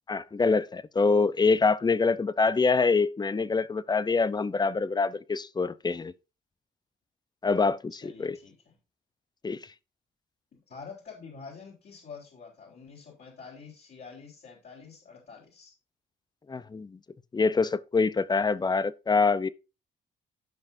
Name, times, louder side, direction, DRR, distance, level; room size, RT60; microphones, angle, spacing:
voice 1, 0.1-6.1 7.4-8.4 9.4-9.6 16.5-17.0 17.3-19.5, left 4 dB, 20° left, 0.6 m, -25 dB
voice 2, 8.0-8.8 10.5-15.7, left 5 dB, 55° left, 4.1 m, -47 dB
15.0 x 5.7 x 2.7 m
cardioid pair, 90°, 20 cm